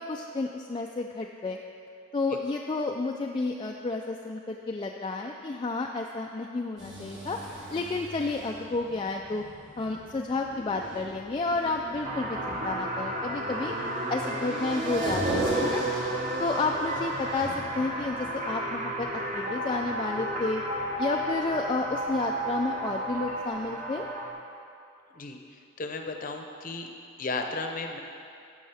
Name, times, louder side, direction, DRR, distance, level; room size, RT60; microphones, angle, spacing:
voice 1, 0.0-1.6 2.1-7.4 7.7-9.4 9.8-13.7 14.1-15.8 16.4-19.1 19.3-20.6 21.0-24.1, left 3 dB, 25° left, 1 dB, 0.3 m, -31 dB
sound 1, 6.8-22.4 22.7-22.8 23.3-23.4 23.6-23.7, right 1 dB, 65° right, 2.2 m, -36 dB
sound 2, 12.0-24.3, right 1 dB, 35° right, 0.9 m, -33 dB
voice 2, 25.8-26.9 27.2-28.0, left 3 dB, 40° left, 4 dB, 0.7 m, -34 dB
15.0 x 6.4 x 3.4 m, 2.5 s
head